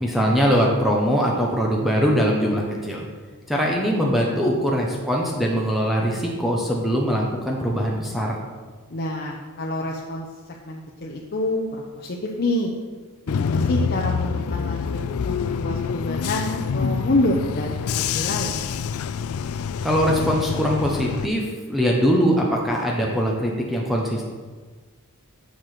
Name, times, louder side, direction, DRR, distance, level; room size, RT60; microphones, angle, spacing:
voice 1, 0.0-3.1 3.5-8.4 19.8-24.3, equal, ahead, -2 dB, 1.0 m, -22 dB
voice 2, 8.9-10.3 10.7-12.7 13.3-18.5, left 1 dB, 45° left, -2 dB, 0.9 m, -27 dB
Bus / Engine, 13.3-21.3, left 6 dB, 70° left, 0.4 m, -26 dB
7.8 x 6.9 x 6.0 m, 1.4 s
head